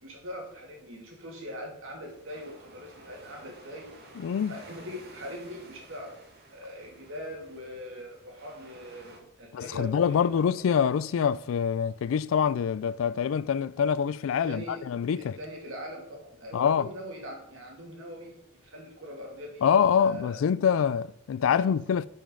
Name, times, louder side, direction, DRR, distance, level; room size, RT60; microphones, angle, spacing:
voice 1, 0.0-3.9 4.5-6.2 6.5-10.7 14.4-14.8 15.2-19.7 20.0-20.5 21.4-21.7, equal, 70° right, 2.3 m, -42 dB
sound 1, 2.0-9.2, right 2 dB, 50° right, 1.6 m, -52 dB
voice 2, 4.2-4.6 9.5-15.4 16.5-16.9 19.6-22.1, left 7 dB, 75° left, 0.3 m, -25 dB
10.0 x 5.3 x 3.8 m
head